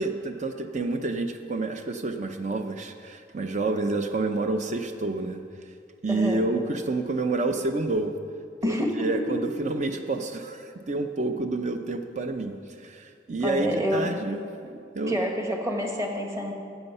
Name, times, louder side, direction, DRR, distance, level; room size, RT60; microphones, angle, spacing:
voice 1, 0.0-5.4 6.0-8.1 8.6-15.2, right 3 dB, 40° right, 6 dB, 0.6 m, -29 dB
voice 2, 6.1-6.4 8.6-9.4 13.4-14.1 15.1-16.5, equal, 20° right, 1 dB, 1.4 m, -28 dB
13.5 x 8.1 x 5.5 m, 2.3 s
head